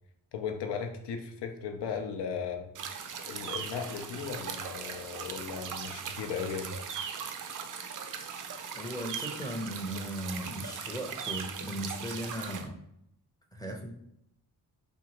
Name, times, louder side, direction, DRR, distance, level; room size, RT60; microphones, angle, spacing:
voice 1, 0.3-2.7 3.3-6.8, left 6 dB, 75° left, 6 dB, 0.6 m, -36 dB
sound 1, 2.7-12.7, right 7 dB, 50° right, 0.5 m, -39 dB
voice 2, 8.8-12.7 13.5-13.9, equal, 10° left, 1 dB, 0.6 m, -37 dB
2.7 x 2.4 x 2.9 m, 0.75 s
cardioid pair, 50°, 42 cm